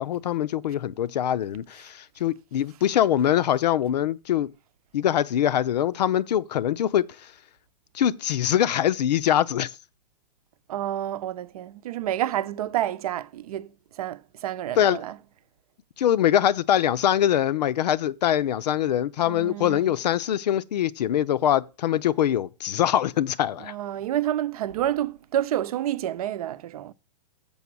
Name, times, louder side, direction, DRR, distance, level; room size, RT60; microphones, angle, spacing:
voice 1, 0.0-4.5 4.9-7.0 7.9-9.7 14.8-15.0 16.0-23.7, left 11 dB, 75° left, 0.7 m, -23 dB
voice 2, 10.7-15.2 19.2-19.9 23.6-26.9, right 12 dB, 60° right, 0.7 m, -29 dB
7.1 x 6.0 x 6.0 m
hypercardioid pair, 155°, 21 cm